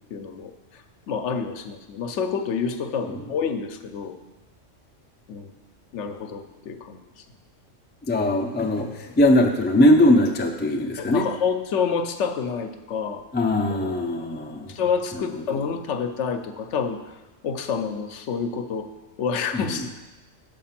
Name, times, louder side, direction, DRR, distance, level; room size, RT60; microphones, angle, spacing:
voice 1, 0.1-0.8 1.1-4.2 5.3-5.5 5.9-7.0 11.0-13.2 13.7-14.0 14.7-17.0 17.4-18.9 19.2-20.1, left 6 dB, 70° left, 7 dB, 0.9 m, -28 dB
voice 2, 8.1-11.3 13.3-14.7 15.5-15.6 19.5-19.7, left 1 dB, 15° left, 3 dB, 0.3 m, -20 dB
6.6 x 5.2 x 5.8 m, 1.1 s
omnidirectional pair, 1.3 m